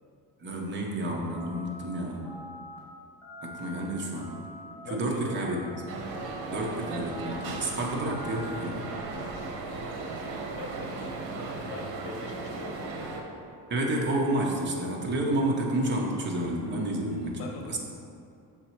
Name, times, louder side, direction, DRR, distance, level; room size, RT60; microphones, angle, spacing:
voice 1, 0.4-2.3 3.4-4.3 4.9-5.8 6.5-8.9 13.7-17.4 17.7-17.8, right 1 dB, 30° right, -1 dB, 0.8 m, -30 dB
sound 1, 1.3-1.8 2.2-2.8 3.2-3.8 4.2-4.7 5.1-5.7 6.1-6.6 7.1-7.6 8.0-8.6, equal, 5° left, 1.0 m, -45 dB
voice 2, 4.8-5.4 10.5-13.1 17.3-17.8, left 3 dB, 85° left, 3 dB, 0.7 m, -42 dB
sound 2, 5.9-13.2, right 3 dB, 75° right, 0.9 m, -36 dB
5.9 x 4.0 x 4.4 m, 2.5 s
cardioid pair, 165°, 37 cm